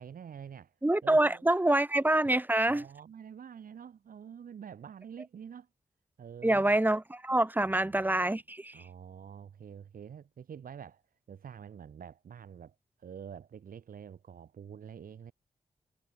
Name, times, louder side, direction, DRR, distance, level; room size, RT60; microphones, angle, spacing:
voice 1, 0.0-1.8 2.7-5.7 6.2-6.8 7.6-8.3 8.7-11.0 11.3-15.3, right 8 dB, 85° right, 7.7 m, -47 dB
voice 2, 0.8-2.8 6.4-8.8, right 1 dB, 15° right, 2.6 m, -26 dB
cardioid pair, 85°, 14 cm